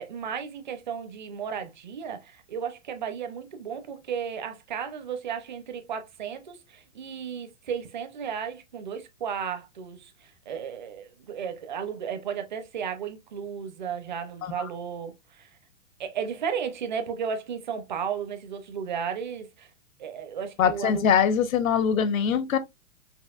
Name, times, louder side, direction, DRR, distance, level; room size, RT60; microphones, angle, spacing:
voice 1, 0.0-15.5 16.0-19.7 20.0-21.1, right 7 dB, 35° right, 0.6 m, -34 dB
voice 2, 20.6-22.6, left 7 dB, 80° left, 0.9 m, -22 dB
5.5 x 2.5 x 2.4 m
hypercardioid pair, 180°, 40 cm